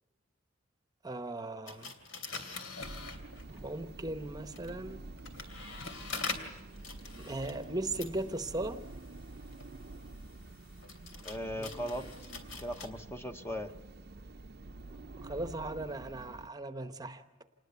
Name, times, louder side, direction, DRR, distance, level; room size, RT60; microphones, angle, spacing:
voice 1, 1.0-1.9 3.5-5.0 7.1-8.8 11.6-11.7 15.2-17.2, right 2 dB, 20° right, 9 dB, 0.9 m, -38 dB
sound 1, 1.7-3.7 4.4-12.9, left 4 dB, 80° left, 2.9 m, -44 dB
sound 2, 2.8-16.5, right 2 dB, 55° right, 0.7 m, -48 dB
voice 2, 11.2-12.3 12.6-13.7, equal, 10° left, 5 dB, 0.9 m, -38 dB
27.5 x 20.5 x 6.9 m, 1.2 s
head